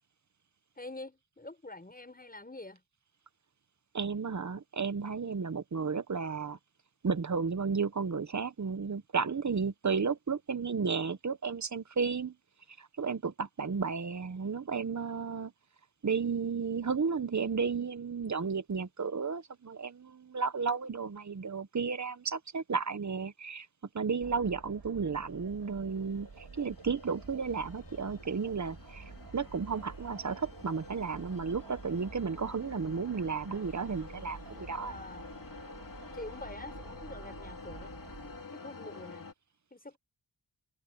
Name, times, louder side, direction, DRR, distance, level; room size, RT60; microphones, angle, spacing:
voice 1, 0.8-2.8 34.8-35.4 36.1-38.0 38.2-39.2 39.7-40.0, left 2 dB, 20° left, 6.4 m, -46 dB
voice 2, 3.9-6.6 7.0-12.3 12.8-15.5 16.0-23.7 23.9-29.0 29.3-34.9, right 5 dB, 40° right, 1.1 m, -33 dB
sound 1, 24.2-38.4, right 5 dB, 60° right, 3.3 m, -50 dB
sound 2, 25.2-39.3, left 4 dB, 50° left, 3.1 m, -50 dB
wide cardioid pair, 80°, 42 cm